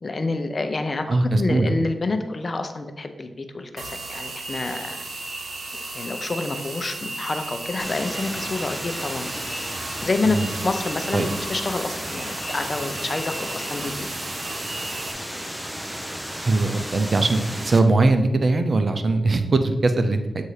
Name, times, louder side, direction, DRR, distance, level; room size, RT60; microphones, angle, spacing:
voice 1, 0.0-5.0 5.9-9.3 10.0-10.4 10.6-14.1, left 3 dB, 45° left, 7 dB, 0.7 m, -28 dB
voice 2, 1.1-1.7 10.3-10.5 11.1-11.3 16.4-20.4, right 2 dB, 60° right, 8 dB, 0.6 m, -21 dB
sound 1, 3.8-15.1, right 2 dB, 75° right, 1.0 m, -35 dB
sound 2, 7.8-17.8, equal, 10° right, 0.7 m, -33 dB
7.7 x 2.8 x 4.9 m, 1.0 s
cardioid pair, 50°, 0 cm